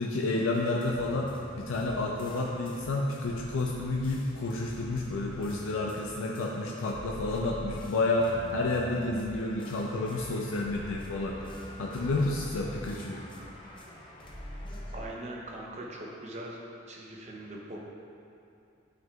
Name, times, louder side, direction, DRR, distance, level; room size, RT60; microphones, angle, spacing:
voice 1, 0.0-11.5 11.8-13.2, left 2 dB, 80° left, -1 dB, 0.4 m, -30 dB
sound 1, 0.5-15.0, left 1 dB, 25° left, 0.5 m, -45 dB
voice 2, 14.9-16.6 16.9-17.8, right 1 dB, 35° right, -2 dB, 0.7 m, -41 dB
9.0 x 4.6 x 2.3 m, 2.6 s
head